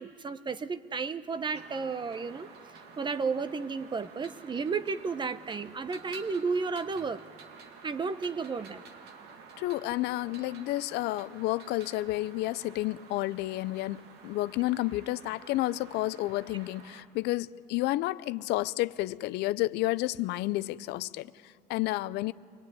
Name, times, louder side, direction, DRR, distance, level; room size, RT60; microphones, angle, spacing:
voice 1, 0.0-2.5 3.0-7.2 7.8-8.8, right 4 dB, 25° right, 0.9 m, -33 dB
sound 1, 1.5-17.0, right 5 dB, 75° right, 2.3 m, -51 dB
voice 2, 9.6-22.3, left 17 dB, 75° left, 0.5 m, -31 dB
25.0 x 19.5 x 9.5 m
cardioid pair, 100°, 17 cm